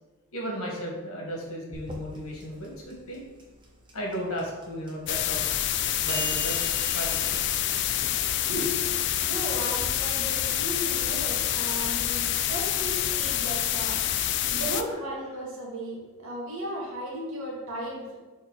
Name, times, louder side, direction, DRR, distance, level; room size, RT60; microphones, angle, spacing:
voice 1, 0.3-3.2 3.9-5.6 6.0-7.6 14.8-15.1, equal, 80° left, -2 dB, 1.9 m, -35 dB
sound 1, 1.7-9.9, right 2 dB, 20° right, 0.8 m, -42 dB
sound 2, 5.1-14.8, left 11 dB, 55° left, 0.3 m, -27 dB
voice 2, 8.4-8.7 9.2-14.0 14.5-18.2, equal, 75° right, -3 dB, 1.9 m, -35 dB
6.4 x 4.3 x 4.1 m, 1.1 s
head